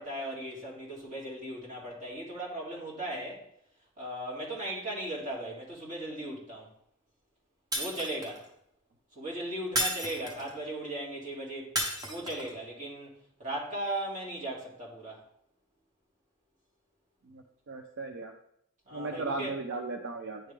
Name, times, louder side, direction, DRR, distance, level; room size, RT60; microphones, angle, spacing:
voice 1, 0.0-3.4 4.0-6.7 7.7-8.5 9.2-11.7 12.1-13.1 13.4-15.2 18.9-19.5 20.4-20.5, right 1 dB, 40° right, -4 dB, 2.0 m, -37 dB
Shatter, 7.7-8.4 9.7-10.6 11.8-12.5, equal, 20° right, 1.0 m, -32 dB
voice 2, 17.3-18.3 18.9-20.4, right 3 dB, 65° right, 4 dB, 0.5 m, -36 dB
9.9 x 3.4 x 3.3 m, 0.72 s
head